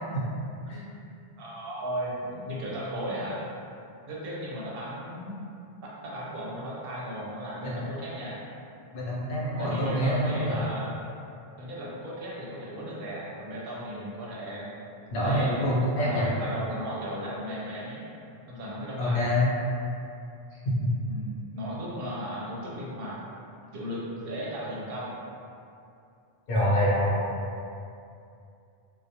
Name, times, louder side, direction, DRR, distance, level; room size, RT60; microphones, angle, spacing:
voice 1, 1.4-3.4 4.1-5.4 5.8-8.4 9.6-10.9 11.6-14.6 15.2-18.0 18.5-19.2 21.1-23.2 23.6-25.1, equal, 70° right, -5 dB, 0.7 m, -36 dB
voice 2, 8.9-10.6 15.1-16.3 19.0-19.5 20.6-20.7 26.5-27.1, equal, 65° left, -7 dB, 0.8 m, -26 dB
2.2 x 2.1 x 2.7 m, 2.6 s
omnidirectional pair, 1.0 m